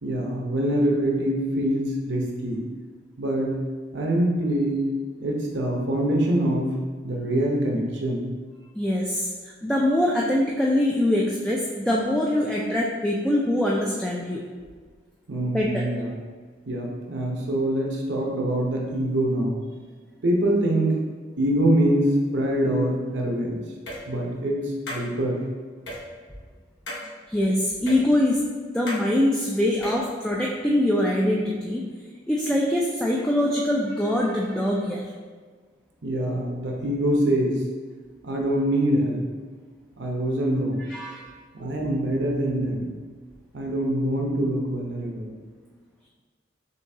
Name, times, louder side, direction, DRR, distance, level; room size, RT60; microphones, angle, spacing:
voice 1, 0.0-2.7 3.2-3.6 3.9-4.8 5.2-6.8 7.0-8.3 15.3-16.1 16.7-19.7 20.2-21.0 21.4-23.6 24.1-25.4 36.0-37.6 38.2-39.3 40.0-40.9 41.5-42.9 43.5-45.3, right 1 dB, 70° right, -1 dB, 0.8 m, -24 dB
voice 2, 8.7-14.4 15.5-15.9 27.3-28.5 28.7-31.8 32.3-35.0 40.9-41.2, left 1 dB, 5° left, -3 dB, 0.3 m, -23 dB
sound 1, 23.9-24.0 24.9-25.0 25.9-26.0 26.9-27.1 27.9-28.0 28.9-29.0 29.7-30.1, left 1 dB, 70° left, 0.9 m, -33 dB
6.6 x 2.7 x 2.7 m, 1.5 s
head